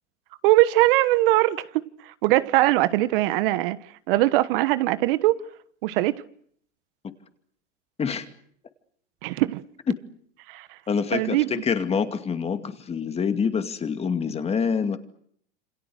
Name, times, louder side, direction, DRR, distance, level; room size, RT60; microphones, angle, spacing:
voice 1, 0.4-3.8 4.1-5.4 5.8-6.2 9.2-9.6 10.5-10.8 11.1-11.5, right 17 dB, 50° right, 1.2 m, -21 dB
voice 2, 10.9-15.0, left 6 dB, 15° left, 2.4 m, -26 dB
28.0 x 25.5 x 6.5 m
hypercardioid pair, 120°, 35 cm